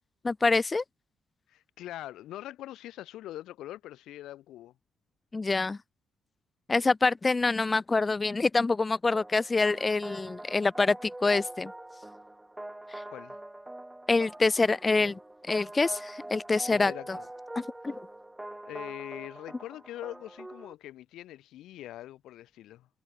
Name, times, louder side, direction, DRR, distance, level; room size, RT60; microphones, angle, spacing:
voice 1, 0.2-0.8 5.3-5.8 6.7-11.7 12.9-13.0 14.1-15.2 15.5-16.9 17.6-17.9, left 3 dB, 25° left, 0.7 m, -26 dB
voice 2, 1.5-4.7 13.1-13.4 16.7-17.3 17.8-17.9 18.6-22.9, left 14 dB, 85° left, 5.8 m, -43 dB
sound 1, 9.1-20.7, right 1 dB, 10° right, 4.2 m, -44 dB
cardioid pair, 90°, 0 cm